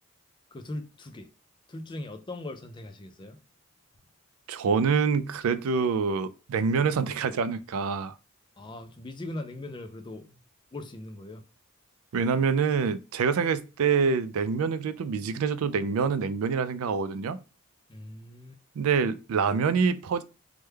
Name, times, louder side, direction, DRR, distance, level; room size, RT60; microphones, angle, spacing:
voice 1, 0.5-1.3 1.7-3.4 8.6-10.3 10.7-11.4 17.9-18.6, left 1 dB, 20° left, 0.4 m, -40 dB
voice 2, 4.5-8.1 12.1-17.4 18.8-20.2, right 5 dB, 90° right, 0.4 m, -26 dB
3.3 x 2.2 x 3.3 m
head